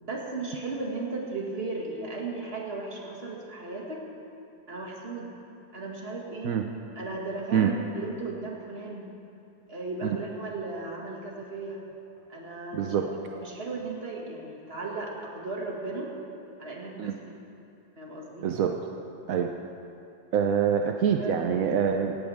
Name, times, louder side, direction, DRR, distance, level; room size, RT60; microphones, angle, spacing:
voice 1, 0.0-4.0 4.7-5.3 5.7-6.5 7.0-9.1 9.7-11.8 12.3-16.1 16.6-17.3 18.0-18.5 21.2-21.5, right 3 dB, 30° right, -2 dB, 2.1 m, -36 dB
voice 2, 12.7-13.1 17.0-17.1 18.4-18.8 19.3-19.5 20.3-22.2, right 7 dB, 65° right, 4 dB, 0.8 m, -25 dB
17.5 x 16.5 x 3.5 m, 2.6 s
omnidirectional pair, 2.2 m